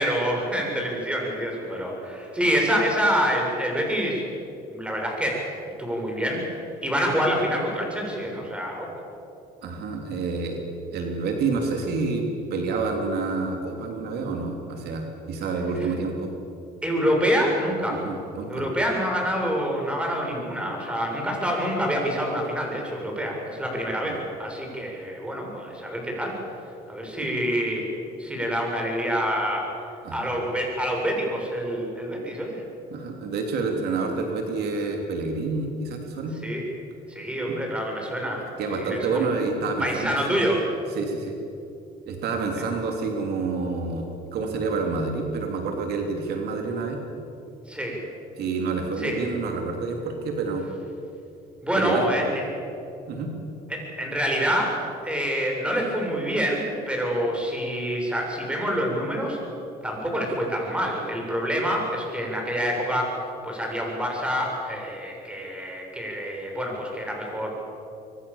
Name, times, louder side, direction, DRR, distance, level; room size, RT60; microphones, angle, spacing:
voice 1, 0.0-4.2 4.7-5.4 5.8-8.9 16.8-18.0 18.5-26.3 26.9-27.9 28.2-29.7 30.1-32.6 36.4-36.6 37.1-38.4 38.7-39.3 39.8-40.6 47.7-48.0 49.0-49.2 51.6-52.5 53.7-54.8 55.0-59.4 59.8-63.2 63.4-67.5, equal, 5° right, -1 dB, 7.5 m, -26 dB
voice 2, 9.6-10.6 10.9-12.3 12.5-16.3 17.9-18.6 24.0-24.2 27.2-27.3 30.0-30.3 32.9-36.3 37.5-37.6 38.6-40.4 40.9-41.4 42.1-47.0 48.4-50.7 51.8-52.0 53.1-53.3, right 4 dB, 70° right, 3 dB, 3.4 m, -28 dB
25.0 x 24.5 x 7.3 m, 2.8 s
cardioid pair, 110°, 17 cm